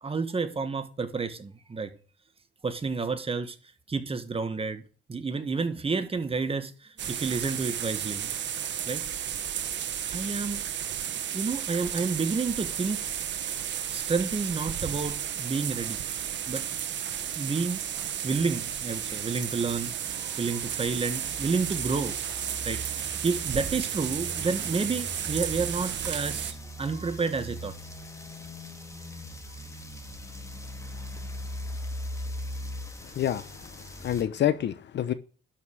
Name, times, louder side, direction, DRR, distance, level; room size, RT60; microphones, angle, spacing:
voice 1, 0.0-1.9 2.6-3.6 3.9-4.8 5.1-8.3 8.9-9.0 10.1-10.6 11.3-13.0 13.9-16.0 16.5-16.7 17.3-17.8 18.2-22.2 22.6-27.8, right 4 dB, 30° right, 1.8 m, -30 dB
sound 1, 7.0-26.5, right 9 dB, 65° right, 1.5 m, -33 dB
sound 2, 15.6-34.2, equal, 15° left, 2.3 m, -41 dB
voice 2, 33.1-35.1, left 11 dB, 65° left, 0.9 m, -28 dB
12.5 x 5.6 x 6.3 m
cardioid pair, 90°, 20 cm